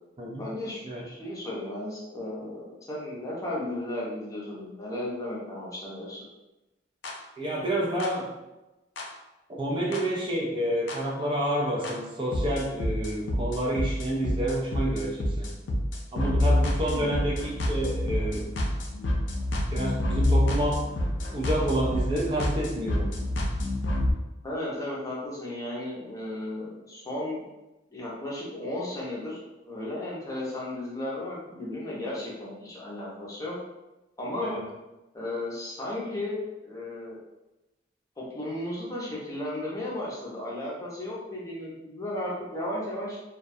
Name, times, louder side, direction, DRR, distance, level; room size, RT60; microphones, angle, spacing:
voice 1, 0.4-6.3 16.8-17.1 24.4-27.4 27.9-29.4 29.7-33.6 34.2-34.6 35.1-37.2 38.2-43.2, left 1 dB, 20° left, -6 dB, 0.6 m, -34 dB
sound 1, 7.0-7.1 8.0-8.1 9.0-9.1 9.9-10.0 10.9-11.0 11.8-11.9 12.3-24.1, left 1 dB, 75° left, 0.4 m, -27 dB
voice 2, 7.4-8.3 9.5-15.5 16.1-18.5 19.7-20.9 21.3-23.1 34.4-34.6, right 1 dB, 25° right, -3 dB, 0.4 m, -29 dB
2.3 x 2.1 x 2.6 m, 1.0 s
head